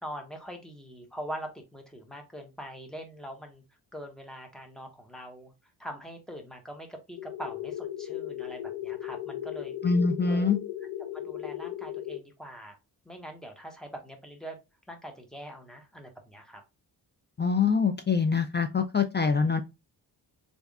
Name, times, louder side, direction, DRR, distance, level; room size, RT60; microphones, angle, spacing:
voice 1, 0.0-3.6 3.9-5.5 5.8-9.7 10.3-10.5 11.1-12.8 13.0-14.6 14.9-16.6, equal, ahead, 0.9 m, -43 dB
sound 1, 7.2-12.2, left 12 dB, 85° left, 0.5 m, -36 dB
voice 2, 9.8-10.6 17.4-19.6, left 5 dB, 25° left, 0.4 m, -24 dB
3.4 x 2.6 x 3.4 m
wide cardioid pair, 100°, 42 cm